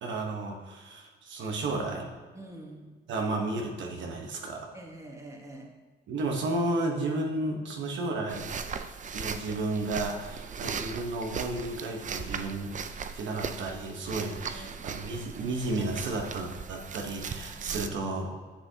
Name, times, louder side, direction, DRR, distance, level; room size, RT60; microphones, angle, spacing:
voice 1, 0.0-2.1 3.1-4.7 6.1-8.5 9.1-18.3, right 2 dB, 70° right, 1 dB, 1.1 m, -33 dB
voice 2, 2.3-2.8 4.7-5.7 14.3-15.6 17.6-17.9, right 1 dB, 15° right, 0 dB, 1.5 m, -47 dB
sound 1, 8.3-17.9, right 6 dB, 40° right, 0.5 m, -38 dB
10.0 x 5.8 x 2.8 m, 1.4 s
cardioid pair, 90°, 20 cm